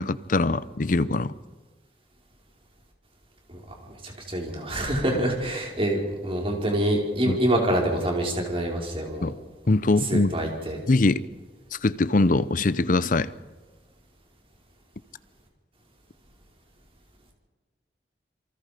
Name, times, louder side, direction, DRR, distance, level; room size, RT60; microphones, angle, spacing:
voice 1, 0.0-1.3 7.3-7.4 9.2-9.4 9.7-10.3 10.9-11.2 11.7-13.3, left 2 dB, 50° left, 0.7 m, -22 dB
voice 2, 4.0-9.3 10.1-10.8, right 1 dB, 30° right, 4.6 m, -26 dB
28.5 x 23.5 x 5.1 m
head